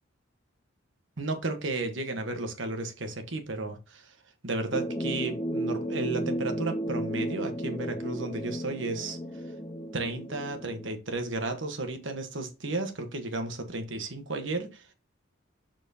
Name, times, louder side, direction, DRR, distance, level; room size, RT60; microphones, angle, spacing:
voice 1, 1.2-4.1 4.4-9.2 9.9-14.9, right 2 dB, 65° right, 1.3 m, -33 dB
sound 1, 4.7-10.9, right 1 dB, 20° left, 0.7 m, -33 dB
6.8 x 6.0 x 2.9 m
head